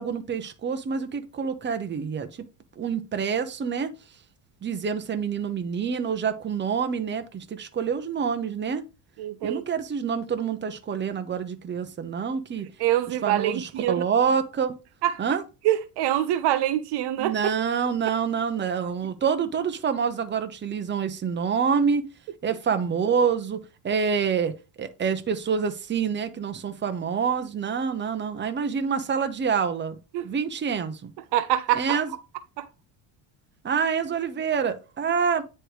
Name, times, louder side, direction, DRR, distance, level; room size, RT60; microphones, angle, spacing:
voice 1, 0.0-2.3 2.8-3.9 4.6-8.9 9.4-12.7 13.2-14.8 15.2-15.4 17.2-22.1 22.4-31.1 31.7-32.1 33.6-35.4, right 6 dB, 25° right, 0.9 m, -27 dB
voice 2, 9.2-9.6 12.8-13.9 15.0-15.2 15.6-17.3 18.8-18.9 30.1-30.3 31.3-32.0 32.6-32.7, right 12 dB, 60° right, 0.7 m, -25 dB
9.8 x 3.3 x 3.2 m
supercardioid pair, 105°, 46 cm